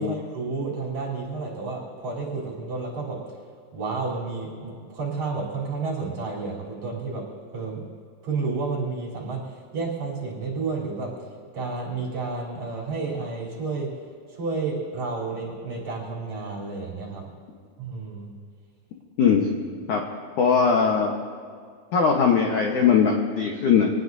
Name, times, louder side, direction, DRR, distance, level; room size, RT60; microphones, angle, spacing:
voice 1, 0.0-3.2 3.7-7.2 7.5-7.8 8.2-11.1 11.5-13.9 14.3-17.2 17.8-18.3, right 4 dB, 40° right, -4 dB, 4.7 m, -31 dB
voice 2, 19.2-19.5 19.9-20.0 20.4-21.1 21.9-23.9, left 6 dB, 90° left, 0 dB, 1.7 m, -20 dB
26.0 x 19.0 x 2.8 m, 2.1 s
omnidirectional pair, 5.6 m